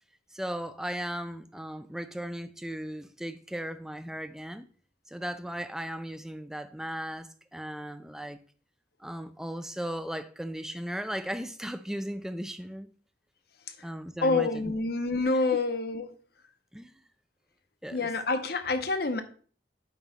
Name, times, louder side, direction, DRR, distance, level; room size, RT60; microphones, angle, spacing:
voice 1, 0.3-4.7 5.1-8.4 9.0-12.9 13.8-14.8 15.5-15.6 16.7-17.0 17.8-18.1, equal, 5° right, 0.4 m, -37 dB
voice 2, 14.2-16.1 17.9-19.2, left 3 dB, 55° left, 0.8 m, -27 dB
9.0 x 3.0 x 5.6 m
head